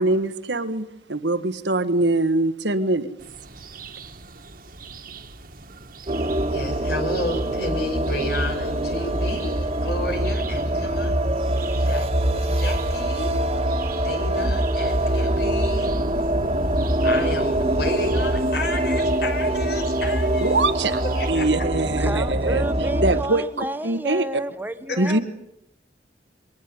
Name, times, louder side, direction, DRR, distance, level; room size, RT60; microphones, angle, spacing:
voice 1, 0.0-3.1 20.4-21.0 21.3-22.6 23.0-24.2 25.0-25.2, right 2 dB, 90° right, 11 dB, 1.6 m, -23 dB
sound 1, 3.2-21.3, right 4 dB, 55° right, 1.9 m, -43 dB
sound 2, 6.1-23.2, right 1 dB, 35° right, 1.8 m, -23 dB
voice 2, 6.5-11.2 11.8-13.3 14.0-16.0 17.0-20.6 21.1-21.5 24.9-25.2, left 1 dB, 65° left, 5 dB, 5.8 m, -31 dB
voice 3, 22.0-25.2, right 1 dB, 10° right, 10 dB, 1.2 m, -31 dB
23.0 x 19.0 x 9.6 m, 0.79 s
head